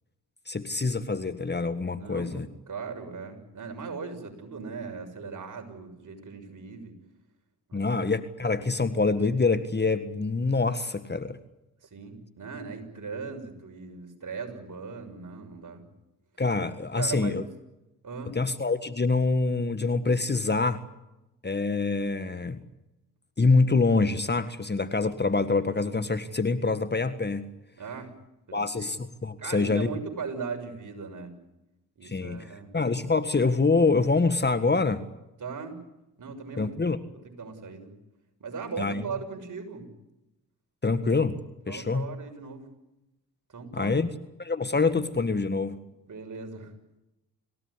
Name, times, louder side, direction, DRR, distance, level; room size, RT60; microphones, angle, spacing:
voice 1, 0.5-2.5 7.7-11.4 16.4-17.4 18.3-20.8 21.4-22.6 23.4-27.5 28.5-30.0 32.0-32.5 32.7-35.1 36.6-37.0 38.8-39.0 40.8-41.4 41.7-42.1 43.7-44.1 44.4-45.8, left 3 dB, 25° left, 11 dB, 1.7 m, -25 dB
voice 2, 1.9-7.0 7.7-8.0 11.8-15.8 17.0-17.4 18.0-18.4 27.8-28.1 28.5-28.9 29.4-31.3 32.0-32.7 35.4-35.8 36.2-37.9 38.4-39.9 41.7-42.7 43.5-43.9 46.1-46.7, right 5 dB, 45° right, 5 dB, 6.6 m, -38 dB
27.5 x 17.0 x 10.0 m, 0.95 s
hypercardioid pair, 50°, 41 cm